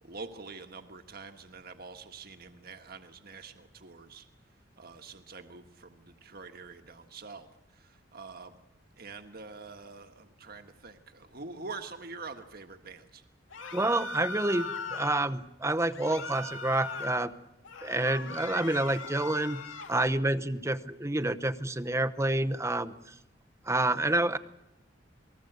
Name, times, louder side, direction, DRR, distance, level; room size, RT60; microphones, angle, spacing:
voice 1, 0.0-4.3 4.8-7.5 7.8-8.5 9.0-13.2, right 4 dB, 50° right, 7 dB, 1.6 m, -45 dB
sound 1, 13.5-15.2 15.9-17.2 17.6-20.0, left 3 dB, 90° left, 2.5 m, -39 dB
voice 2, 13.7-17.3 17.8-19.6 19.9-23.0 23.7-24.4, right 2 dB, 15° right, 12 dB, 0.9 m, -28 dB
28.5 x 20.5 x 8.1 m, 0.91 s
head